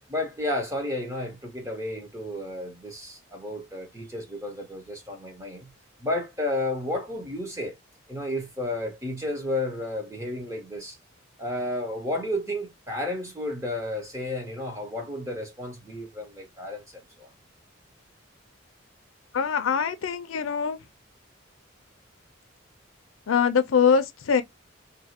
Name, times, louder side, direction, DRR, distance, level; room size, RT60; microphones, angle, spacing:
voice 1, 0.0-5.7 6.0-7.8 8.1-11.0 11.4-17.3, left 1 dB, 15° right, 0.8 m, -32 dB
voice 2, 19.3-20.8 23.3-24.4, left 6 dB, 90° left, 0.5 m, -23 dB
2.6 x 2.3 x 2.8 m
head